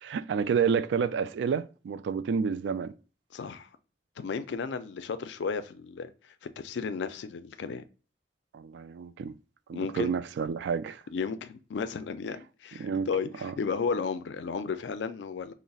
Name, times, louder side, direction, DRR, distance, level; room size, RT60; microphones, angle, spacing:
voice 1, 0.0-2.9 8.5-9.3 9.7-11.0 12.8-13.1 13.4-13.5, right 6 dB, 75° right, 0.3 m, -29 dB
voice 2, 3.3-3.7 4.2-6.1 6.6-7.8 9.7-10.1 11.1-15.5, left 5 dB, 85° left, 0.4 m, -33 dB
5.2 x 2.0 x 2.3 m
head